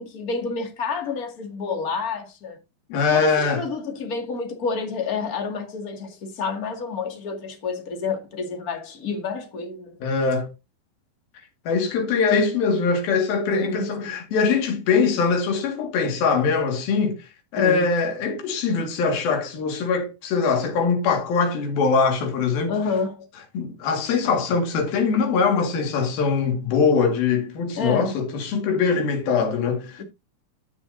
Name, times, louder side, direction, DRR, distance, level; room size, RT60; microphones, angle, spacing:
voice 1, 0.0-2.6 3.1-10.0 13.5-14.2 17.5-17.8 22.7-23.2 27.7-28.1, left 4 dB, 35° left, 1.5 m, -29 dB
voice 2, 2.9-3.6 10.0-10.5 11.7-22.8 23.5-30.0, left 5 dB, 60° left, 3.6 m, -22 dB
16.0 x 6.4 x 2.7 m
omnidirectional pair, 5.0 m